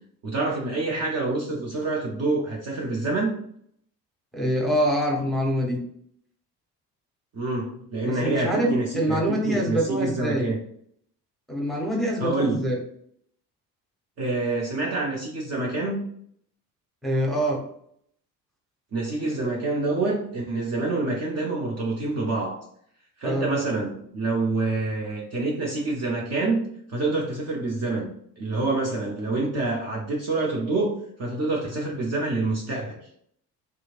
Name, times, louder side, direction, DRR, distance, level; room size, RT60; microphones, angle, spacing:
voice 1, 0.2-3.4 7.3-10.6 12.2-12.6 14.2-16.0 18.9-22.6 23.2-26.6 26.9-33.1, right 2 dB, 30° right, -2 dB, 0.7 m, -27 dB
voice 2, 4.3-5.8 8.1-10.5 11.5-12.8 17.0-17.6 23.2-23.5, equal, ahead, -2 dB, 0.9 m, -25 dB
3.4 x 3.0 x 2.4 m, 0.66 s
figure-of-eight pair, 50°, 48 cm